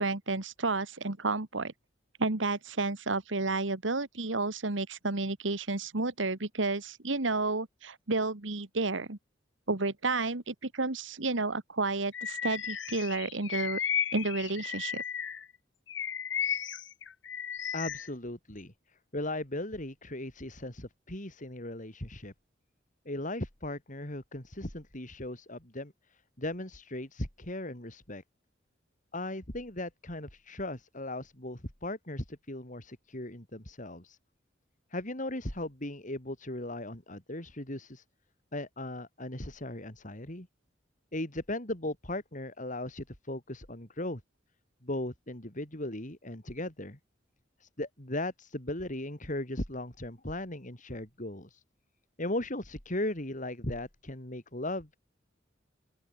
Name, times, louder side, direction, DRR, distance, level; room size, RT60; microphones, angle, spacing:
voice 1, 0.0-1.7 2.2-9.2 9.7-13.8 14.1-15.0, right 3 dB, 90° right, 1.9 m, -31 dB
Bird vocalization bird call bird song, 12.1-15.4 15.9-18.1, left 8 dB, 80° left, 1.8 m, -34 dB
voice 2, 17.7-18.7 19.1-22.3 23.0-25.9 26.4-28.2 29.1-34.2 34.9-38.0 38.5-40.5 41.1-44.2 44.8-47.0 47.6-51.6 52.2-55.0, left 1 dB, 45° left, 4.9 m, -37 dB
open air
head